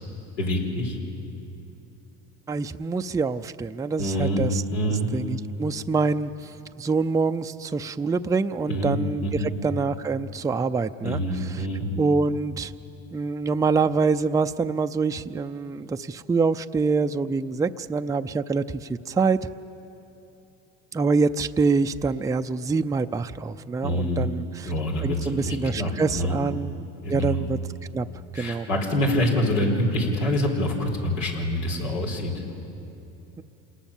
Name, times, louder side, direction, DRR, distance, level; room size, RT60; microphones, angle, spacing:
voice 1, 0.4-1.0 4.0-5.1 8.7-9.0 9.2-9.5 11.0-11.9 23.8-24.3 24.6-26.3 27.0-27.5 28.3-32.3, equal, 90° left, 0 dB, 4.4 m, -26 dB
voice 2, 2.5-11.7 12.0-12.7 13.1-19.5 20.9-24.7 25.0-26.7 27.1-27.6 27.9-28.1 28.4-28.7, right 4 dB, 10° right, 8 dB, 0.5 m, -25 dB
27.0 x 19.5 x 7.2 m, 2.9 s
supercardioid pair, 95°, 34 cm